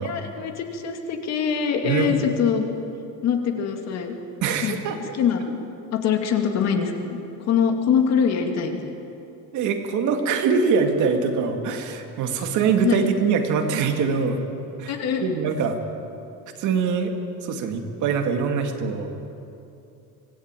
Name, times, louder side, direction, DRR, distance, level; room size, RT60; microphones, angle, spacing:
voice 1, 0.0-2.7 3.2-4.1 4.6-4.8 5.2-5.5 5.9-7.2 7.5-8.9 12.8-13.0 14.9-15.2, left 7 dB, 45° left, 4 dB, 2.5 m, -23 dB
voice 2, 1.8-2.1 4.4-5.0 9.5-14.4 14.8-15.8 16.6-17.1 17.4-19.3, right 5 dB, 55° right, 5 dB, 2.3 m, -23 dB
25.0 x 17.0 x 9.1 m, 2.8 s
cardioid pair, 170°, 36 cm